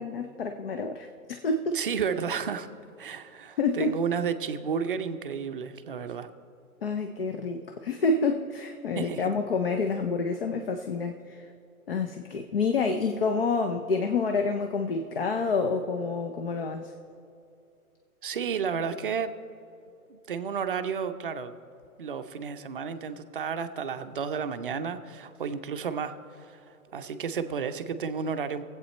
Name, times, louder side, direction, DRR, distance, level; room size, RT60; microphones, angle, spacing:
voice 1, 0.0-1.8 3.6-4.0 6.8-11.5 11.9-16.9, left 4 dB, 40° left, 6 dB, 0.6 m, -28 dB
voice 2, 1.7-2.7 3.0-6.3 9.0-9.3 18.2-19.3 20.1-21.5 22.0-26.6 26.9-28.6, right 6 dB, 40° right, 9 dB, 0.5 m, -32 dB
20.0 x 8.1 x 4.2 m, 2.6 s
hypercardioid pair, 155°, 44 cm